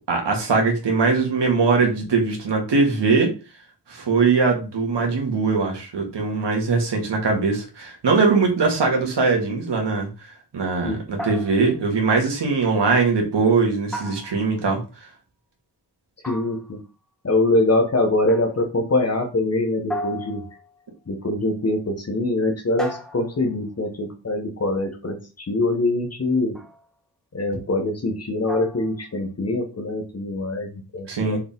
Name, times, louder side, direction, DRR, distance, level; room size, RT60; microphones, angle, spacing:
voice 1, 0.1-3.3 3.9-10.1 10.5-15.1 31.1-31.4, right 4 dB, 80° right, 1 dB, 2.5 m, -21 dB
sound 1, 11.2-11.9 13.9-14.8 16.2-16.9 18.3-18.7 19.9-20.9 22.8-23.6 26.6-26.9 28.5-29.0, left 1 dB, ahead, 1.4 m, -35 dB
voice 2, 16.2-16.8 17.2-20.4 21.1-26.5 27.3-31.4, left 2 dB, 35° left, 4 dB, 1.6 m, -23 dB
6.6 x 5.2 x 3.7 m, 0.32 s
wide cardioid pair, 160°, 41 cm